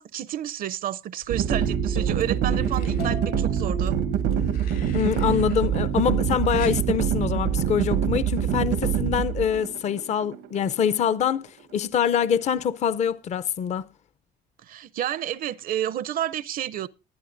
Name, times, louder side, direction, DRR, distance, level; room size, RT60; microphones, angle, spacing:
voice 1, 0.0-4.0 14.7-16.9, right 11 dB, 60° right, 0.5 m, -30 dB
sound 1, 1.2-1.9 2.4-3.1 4.2-5.6 6.5-6.8 8.1-8.3, left 8 dB, 80° left, 7.9 m, -47 dB
sound 2, 1.3-11.4, right 9 dB, 85° right, 0.9 m, -25 dB
sound 3, 1.5-5.9, left 3 dB, 65° left, 2.0 m, -38 dB
voice 2, 4.9-13.8, left 8 dB, 45° left, 0.5 m, -25 dB
20.5 x 9.4 x 2.5 m
cardioid pair, 110°, 17 cm